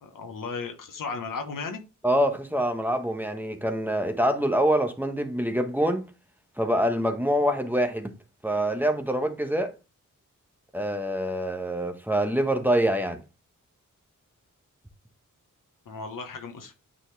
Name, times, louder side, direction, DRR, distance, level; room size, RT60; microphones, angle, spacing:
voice 1, 0.0-1.8 15.8-16.7, left 4 dB, 90° left, 1.4 m, -35 dB
voice 2, 2.0-6.1 6.6-8.1 8.4-9.7 10.7-13.2, equal, 5° right, 1.1 m, -25 dB
9.0 x 4.1 x 3.4 m
cardioid pair, 75°, 32 cm